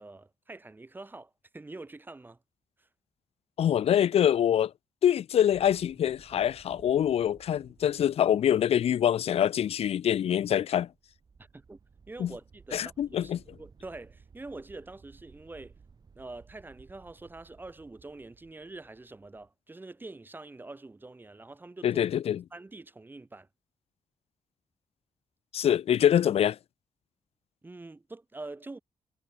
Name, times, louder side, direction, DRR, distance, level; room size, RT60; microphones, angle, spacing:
voice 1, 0.0-2.4 2.8-2.9 11.5-11.8 12.1-13.3 13.6-15.8 16.1-22.0 22.5-23.5 27.6-28.8, right 2 dB, 15° right, 1.3 m, -45 dB
voice 2, 3.6-4.7 5.0-10.9 12.2-12.3 12.7-13.4 21.8-22.4 25.5-26.6, left 10 dB, 55° left, 0.4 m, -25 dB
sound 1, 5.5-19.5, right 5 dB, 35° right, 2.6 m, -58 dB
wide cardioid pair, 170°, 12 cm